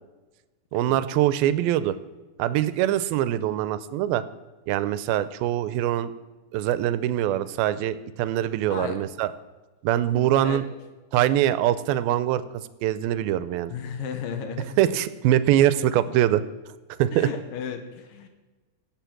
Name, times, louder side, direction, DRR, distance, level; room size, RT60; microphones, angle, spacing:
voice 1, 0.7-2.0 2.4-4.2 4.7-6.1 6.5-9.3 9.8-10.6 11.1-12.4 12.8-13.7 14.8-16.4 17.0-17.3, right 12 dB, 85° right, 14 dB, 2.5 m, -23 dB
voice 2, 13.7-14.8 15.7-16.2 17.1-18.3, left 7 dB, 75° left, 6 dB, 2.6 m, -35 dB
16.5 x 7.5 x 5.9 m, 1.2 s
omnidirectional pair, 4.2 m